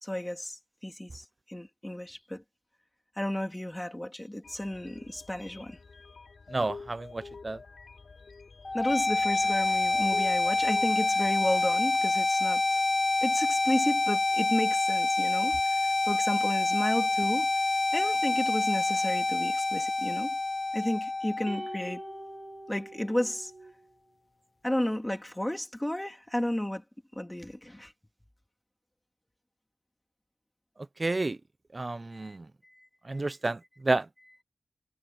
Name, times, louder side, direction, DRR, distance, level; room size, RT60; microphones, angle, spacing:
voice 1, 0.0-2.4 3.2-5.8 8.7-12.8 13.2-15.8 16.0-17.5 17.9-20.4 20.7-22.0 22.7-23.5 24.6-26.8 27.1-27.9 32.2-32.4, left 1 dB, 15° left, 3.3 m, -32 dB
sound 1, 4.4-11.8, left 4 dB, 75° left, 6.3 m, -48 dB
voice 2, 6.5-7.6 31.0-31.4 31.7-32.4 33.1-33.6 33.8-34.0, right 2 dB, 40° right, 0.9 m, -30 dB
sound 2, 8.6-22.6, left 2 dB, 40° left, 0.5 m, -27 dB
sound 3, 21.5-23.9, right 3 dB, 65° right, 1.6 m, -45 dB
wide cardioid pair, 80°, 0 cm